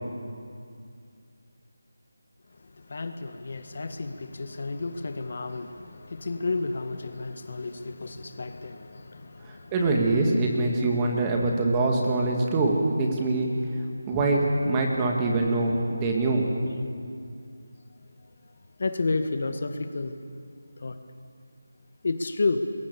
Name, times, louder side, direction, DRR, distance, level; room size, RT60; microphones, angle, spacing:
voice 1, 2.5-9.8 18.0-18.3 18.8-20.2 20.8-21.0 22.0-22.6, left 3 dB, 45° left, 8 dB, 1.6 m, -31 dB
voice 2, 9.7-13.5 14.1-16.5, right 2 dB, 15° right, 0 dB, 2.1 m, -24 dB
26.5 x 22.0 x 7.0 m, 2.3 s
figure-of-eight pair, 175°, 0 cm